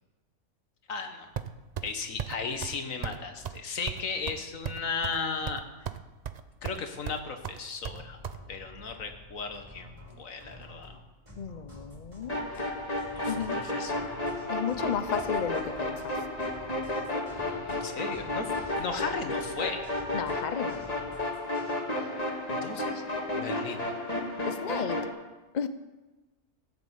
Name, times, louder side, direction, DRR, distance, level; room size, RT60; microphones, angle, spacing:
voice 1, 0.9-1.3 1.8-5.6 6.6-8.2 8.5-11.0 13.2-13.9 17.7-18.5 18.8-19.9 22.5-23.0 23.3-23.9, left 5 dB, 75° left, 6 dB, 1.7 m, -35 dB
sound 1, 1.4-1.9 2.2-2.3 2.6-2.8 3.0-3.2 3.4-3.6 3.9-5.2 5.5-6.0 6.2-6.8 7.1-8.4, right 8 dB, 50° right, 0.5 m, -36 dB
sound 2, 7.8-22.1, left 1 dB, 20° right, 4.8 m, -49 dB
voice 2, 11.4-12.4 13.3-13.6 14.5-16.1 20.1-20.8 24.4-25.0 25.5-25.7, left 7 dB, 45° left, 11 dB, 0.6 m, -33 dB
sound 3, 12.3-25.1, left 2 dB, 30° left, 2.0 m, -32 dB
16.5 x 7.0 x 8.2 m, 1.2 s
omnidirectional pair, 1.4 m